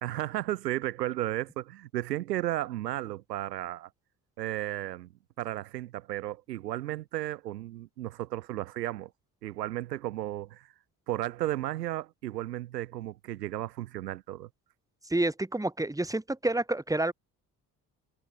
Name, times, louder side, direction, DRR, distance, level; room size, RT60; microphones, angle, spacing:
voice 1, 0.0-3.9 4.4-5.1 5.4-9.1 9.4-10.7 11.1-14.5, right 14 dB, 75° right, 1.2 m, -34 dB
voice 2, 15.0-17.1, right 2 dB, 5° right, 2.3 m, -29 dB
figure-of-eight pair, 50°, 48 cm